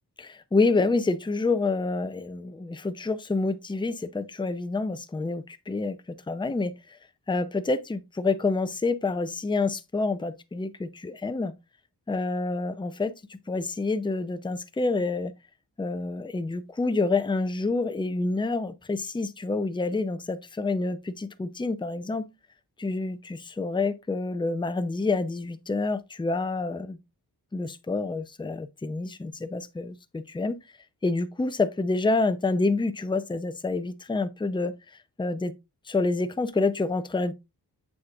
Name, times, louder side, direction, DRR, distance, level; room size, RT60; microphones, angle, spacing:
voice 1, 0.2-6.0 6.3-6.7 7.3-11.5 12.1-15.3 15.8-22.3 22.8-27.0 27.5-30.6 31.0-34.7 35.2-35.5 35.9-37.3, left 3 dB, 10° left, 0.5 m, -28 dB
7.6 x 6.1 x 2.3 m
wide cardioid pair, 90°, 41 cm